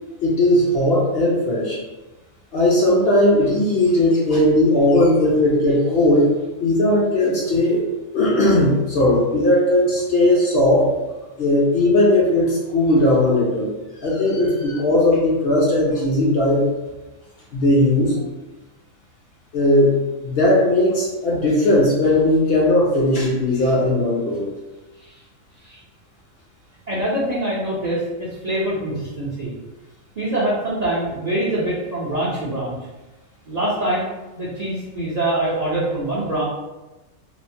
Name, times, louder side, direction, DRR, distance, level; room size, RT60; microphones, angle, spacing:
voice 1, 0.2-1.8 2.5-6.3 6.6-7.8 8.1-10.9 11.4-13.7 14.0-16.7 17.5-18.2 19.5-24.5, left 1 dB, 60° left, -4 dB, 0.7 m, -17 dB
voice 2, 26.9-29.5 30.2-32.7 33.5-34.1 34.3-36.4, right 1 dB, 55° right, -9 dB, 0.5 m, -24 dB
3.0 x 2.1 x 2.6 m, 1.1 s
omnidirectional pair, 1.4 m